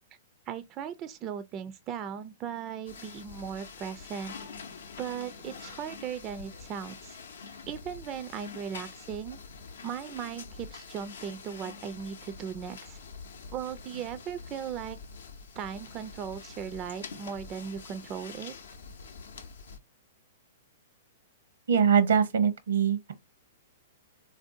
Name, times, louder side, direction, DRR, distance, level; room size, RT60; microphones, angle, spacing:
voice 1, 0.5-4.3 5.0-7.2 7.7-9.4 9.8-13.0 13.5-15.0 15.6-18.5, right 8 dB, 35° right, 0.3 m, -37 dB
sound 1, 2.9-19.8, left 5 dB, 75° left, 0.6 m, -46 dB
voice 2, 21.7-23.1, right 7 dB, 75° right, 0.7 m, -23 dB
3.4 x 2.6 x 2.5 m
hypercardioid pair, 115°, 0 cm